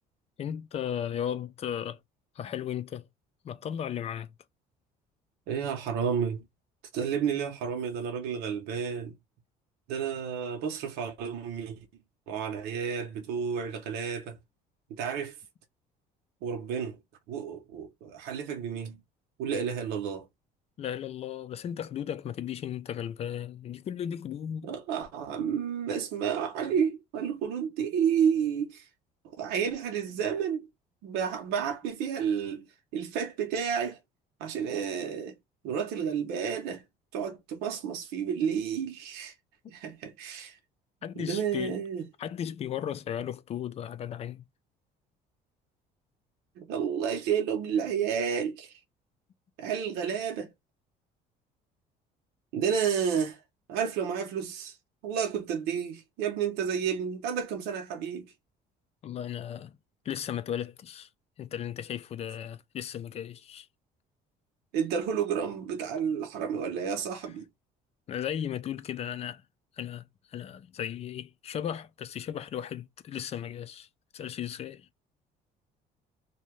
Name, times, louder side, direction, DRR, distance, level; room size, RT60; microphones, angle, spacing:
voice 1, 0.4-2.0 2.4-3.0 3.4-4.3 20.8-24.7 41.0-41.8 42.2-44.4 59.0-59.8 60.0-61.1 61.4-63.7 68.1-69.4 69.8-70.0 70.3-73.9 74.1-74.9, left 9 dB, 40° left, 0.4 m, -35 dB
voice 2, 5.5-6.4 6.9-9.1 9.9-11.9 12.3-14.4 14.9-15.3 16.4-17.0 17.3-19.0 19.4-20.2 24.6-28.8 29.4-30.7 31.0-32.7 32.9-34.0 34.4-35.3 35.6-36.8 37.1-39.3 39.7-40.6 41.2-42.0 46.6-48.7 49.6-50.5 52.5-53.4 53.7-54.8 55.0-58.3 64.7-67.5, right 7 dB, 90° right, 0.8 m, -31 dB
2.7 x 2.2 x 3.1 m
cardioid pair, 130°, 16 cm